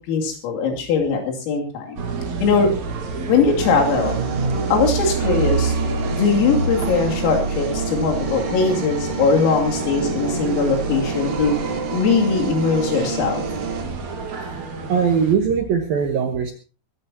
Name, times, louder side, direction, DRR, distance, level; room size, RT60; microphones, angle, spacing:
voice 1, 0.1-2.0 2.4-2.7 3.3-4.2 4.7-5.7 6.1-11.6 11.9-13.4, left 5 dB, 90° left, 1 dB, 5.4 m, -20 dB
sound 1, 2.0-15.3, right 3 dB, 55° right, 2.1 m, -28 dB
sound 2, 3.6-13.8, right 5 dB, 90° right, 5.8 m, -28 dB
voice 2, 14.9-16.5, right 6 dB, 75° right, 5 dB, 2.2 m, -20 dB
23.5 x 14.5 x 2.9 m, 0.34 s
omnidirectional pair, 5.8 m